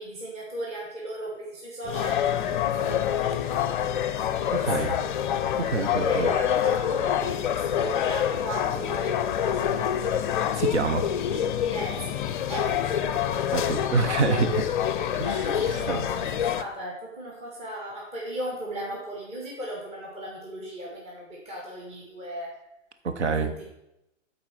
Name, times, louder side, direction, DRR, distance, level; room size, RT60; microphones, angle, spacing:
voice 1, 0.0-3.8 4.3-5.1 5.5-5.6 6.0-10.0 11.5-12.2 12.5-13.1 15.4-22.5 23.4-23.7, right 1 dB, 15° right, -3 dB, 1.5 m, -37 dB
sound 1, 1.8-16.6, left 10 dB, 45° left, 0.5 m, -26 dB
voice 2, 4.5-4.9 5.6-6.3 10.5-11.1 13.5-14.6 15.1-16.0 23.0-23.5, right 4 dB, 65° right, 7 dB, 0.9 m, -27 dB
8.6 x 4.0 x 5.9 m, 0.88 s
figure-of-eight pair, 105°, 36 cm